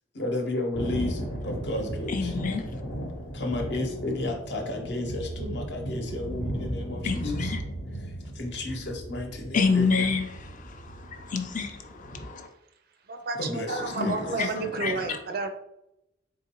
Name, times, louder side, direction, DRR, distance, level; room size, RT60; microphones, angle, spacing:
voice 1, 0.1-2.3 3.3-7.5 8.3-10.2 13.4-14.5, left 1 dB, 60° left, 0.9 m, -33 dB
Thunder, 0.7-12.3, right 1 dB, 85° left, 1.0 m, -36 dB
voice 2, 2.1-2.6 7.0-7.6 9.5-12.5 13.7-14.5 14.8-14.9, left 4 dB, 40° left, 0.5 m, -28 dB
voice 3, 13.1-15.5, right 4 dB, 50° right, 0.4 m, -31 dB
3.8 x 3.7 x 3.0 m
head